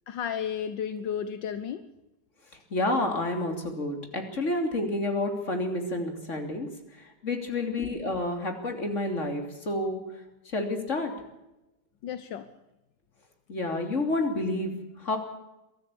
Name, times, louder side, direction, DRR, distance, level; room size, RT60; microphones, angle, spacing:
voice 1, 0.1-1.8 7.8-7.9 12.0-12.5, left 8 dB, 80° left, 11 dB, 1.7 m, -33 dB
voice 2, 2.7-6.7 7.0-10.0 10.5-11.1 13.5-14.7 15.0-15.2, left 2 dB, 40° left, 4 dB, 3.5 m, -29 dB
23.5 x 13.0 x 8.7 m, 0.96 s
omnidirectional pair, 1.9 m